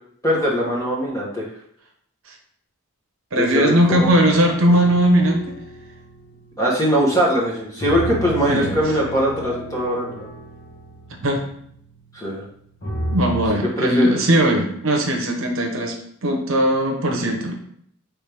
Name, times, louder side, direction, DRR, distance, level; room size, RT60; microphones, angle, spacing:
voice 1, 0.2-1.4 3.4-4.1 6.6-10.3 12.1-12.4 13.6-14.1, equal, 15° left, -3 dB, 1.0 m, -21 dB
voice 2, 3.3-5.5 8.5-8.7 11.2-11.4 13.1-15.9 16.2-17.5, right 1 dB, 65° right, 2 dB, 0.8 m, -19 dB
sound 1, 3.9-7.2 7.8-12.4 12.8-13.5, equal, 50° left, 1.3 m, -32 dB
4.9 x 3.2 x 3.4 m, 0.68 s
head